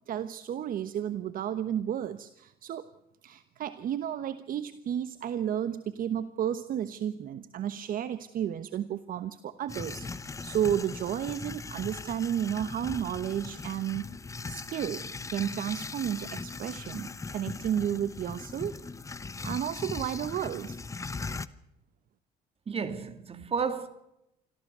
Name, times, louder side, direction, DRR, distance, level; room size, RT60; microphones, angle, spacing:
voice 1, 0.1-2.9 3.2-14.0 14.5-18.8 19.4-20.8, right 10 dB, 55° right, 1.1 m, -32 dB
sound 1, 9.7-21.5, left 4 dB, 20° left, 0.9 m, -39 dB
voice 2, 22.7-23.9, right 5 dB, 35° right, 2.7 m, -32 dB
26.0 x 14.5 x 6.8 m
cardioid pair, 110°, 17 cm